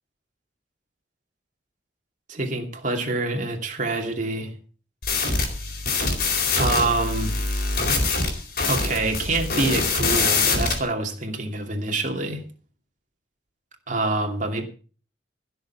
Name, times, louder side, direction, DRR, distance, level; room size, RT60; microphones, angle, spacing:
voice 1, 2.3-4.5 6.5-7.3 8.7-12.4 13.9-14.6, right 2 dB, 45° right, 2.6 m, -26 dB
sound 1, 5.0-10.8, left 3 dB, 55° left, 4.3 m, -24 dB
16.0 x 7.0 x 7.0 m
head